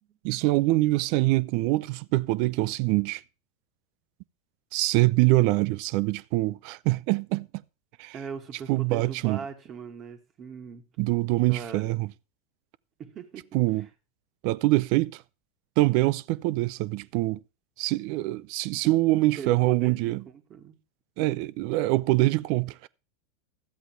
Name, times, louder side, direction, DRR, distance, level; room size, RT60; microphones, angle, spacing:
voice 1, 0.2-3.2 4.7-7.5 8.0-8.1 8.7-9.4 11.0-12.1 13.5-13.9 14.4-15.2 15.8-17.4 17.8-20.2 21.2-22.9, right 19 dB, 60° right, 0.5 m, -24 dB
voice 2, 8.1-10.8 11.5-11.9 13.0-13.4 19.4-20.8, right 6 dB, 35° right, 2.2 m, -40 dB
12.5 x 8.0 x 4.5 m
hypercardioid pair, 100°, 0 cm